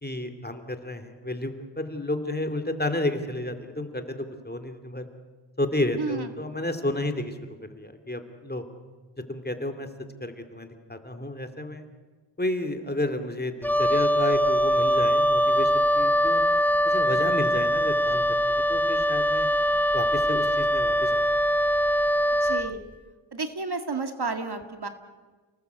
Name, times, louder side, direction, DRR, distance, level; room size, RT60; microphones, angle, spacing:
voice 1, 0.0-5.1 5.6-8.6 9.3-9.9 10.2-11.8 12.4-16.4 16.8-19.5 19.9-21.2, left 1 dB, 20° left, 7 dB, 2.6 m, -31 dB
voice 2, 6.0-6.3 22.4-22.8 23.3-24.9, right 4 dB, 55° right, 7 dB, 2.1 m, -31 dB
Wind instrument woodwind instrument, 13.6-22.7, equal, 5° left, 0.8 m, -22 dB
30.0 x 19.0 x 8.1 m, 1.4 s
wide cardioid pair, 65°, 45 cm